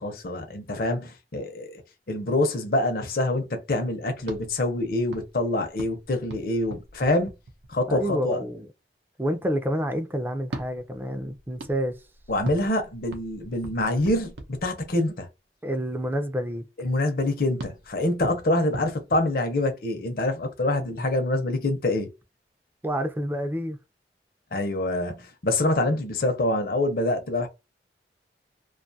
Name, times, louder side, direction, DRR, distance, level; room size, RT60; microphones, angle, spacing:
voice 1, 0.0-1.8 2.1-7.3 7.7-8.4 12.3-14.3 14.6-15.3 16.8-22.1 24.5-27.5, left 1 dB, 55° left, 0.7 m, -26 dB
sound 1, 4.2-8.0 10.4-15.3 17.6-20.0, right 2 dB, 85° right, 0.6 m, -41 dB
voice 2, 7.9-8.7 9.2-12.0 15.6-16.7 22.8-23.8, equal, 10° right, 0.4 m, -28 dB
2.5 x 2.3 x 2.6 m
head